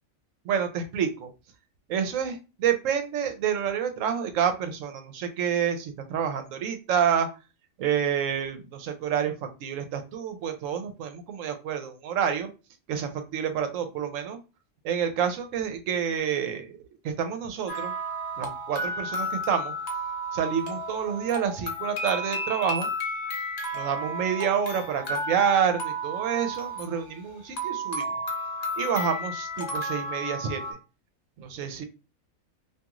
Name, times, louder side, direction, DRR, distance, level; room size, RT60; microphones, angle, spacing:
voice 1, 0.4-1.3 1.9-7.3 7.8-9.3 9.6-12.5 12.9-14.4 14.8-16.7 17.0-17.9 18.4-19.7 20.3-22.9 23.7-28.1 28.8-30.6 31.4-31.8, right 8 dB, 75° right, 7 dB, 0.9 m, -28 dB
sound 1, 17.7-30.7, equal, 45° left, 0.6 m, -33 dB
2.5 x 2.4 x 2.9 m, 0.30 s
omnidirectional pair, 1.4 m